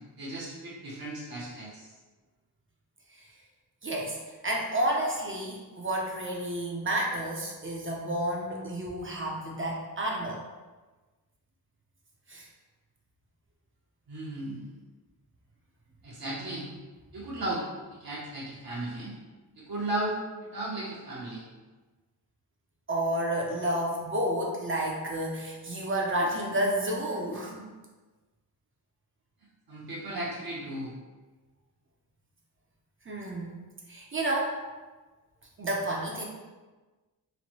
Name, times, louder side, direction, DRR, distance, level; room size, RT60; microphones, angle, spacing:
voice 1, 0.2-1.9 14.1-14.7 16.0-16.7 17.1-17.6 18.0-19.1 19.6-20.2 20.4-21.4 29.7-30.9, right 1 dB, 65° right, -6 dB, 0.8 m, -35 dB
voice 2, 3.8-4.2 4.4-10.4 12.3-12.5 22.9-27.7 33.1-33.5 33.9-34.6 35.6-36.2, right 1 dB, 30° right, -1 dB, 0.5 m, -30 dB
3.1 x 2.1 x 2.9 m, 1.3 s
cardioid pair, 75°, 39 cm